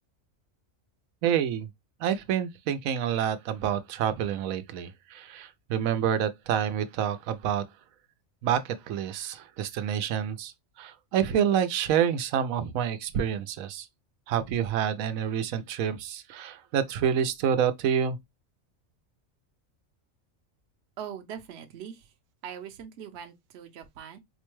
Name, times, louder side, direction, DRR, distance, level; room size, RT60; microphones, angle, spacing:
voice 1, 1.2-1.7 2.0-7.6 8.4-10.5 10.8-13.9 14.3-18.2, right 9 dB, 85° right, 1.0 m, -28 dB
voice 2, 21.0-22.1 22.4-24.2, right 8 dB, 60° right, 0.8 m, -41 dB
4.4 x 2.2 x 3.0 m
omnidirectional pair, 1.4 m